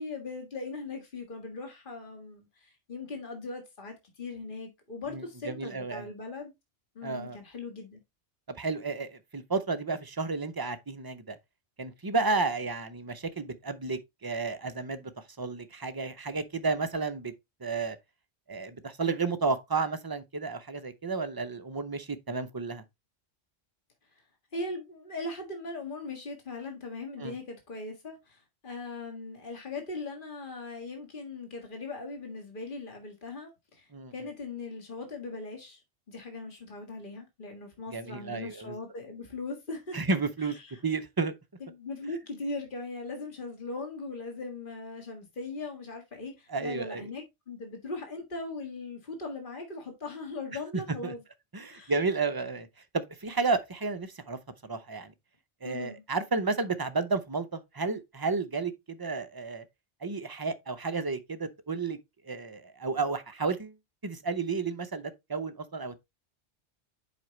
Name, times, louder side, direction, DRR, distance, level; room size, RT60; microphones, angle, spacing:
voice 1, 0.0-6.5 7.0-8.0 24.5-35.8 36.1-40.0 40.4-40.8 41.6-51.2 51.7-51.9 55.6-56.0, left 3 dB, 45° left, 1.9 m, -39 dB
voice 2, 5.1-6.1 7.0-7.4 8.6-11.4 11.8-15.1 15.4-17.3 17.6-18.0 18.5-22.8 27.2-27.3 33.9-34.1 37.9-38.8 39.9-40.6 40.8-41.3 46.5-47.1 51.0-51.1 51.5-52.7 52.9-55.1 55.6-59.6 60.0-62.0 62.2-63.7 64.0-66.0, right 4 dB, 25° right, 0.5 m, -32 dB
7.7 x 5.2 x 3.1 m
omnidirectional pair, 1.2 m